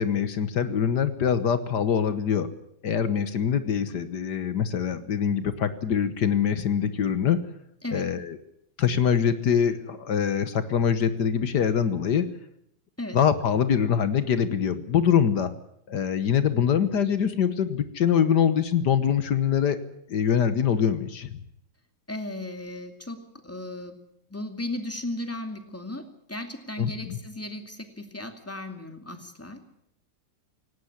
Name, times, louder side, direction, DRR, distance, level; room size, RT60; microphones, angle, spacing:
voice 1, 0.0-2.5 2.8-7.4 7.9-8.4 8.8-12.3 13.1-15.5 15.9-19.8 20.1-21.4 26.8-27.2, left 8 dB, 70° left, 12 dB, 1.7 m, -24 dB
voice 2, 22.1-24.0 24.3-29.7, left 1 dB, 10° left, 6 dB, 2.4 m, -36 dB
18.0 x 17.5 x 10.0 m, 0.74 s
omnidirectional pair, 1.9 m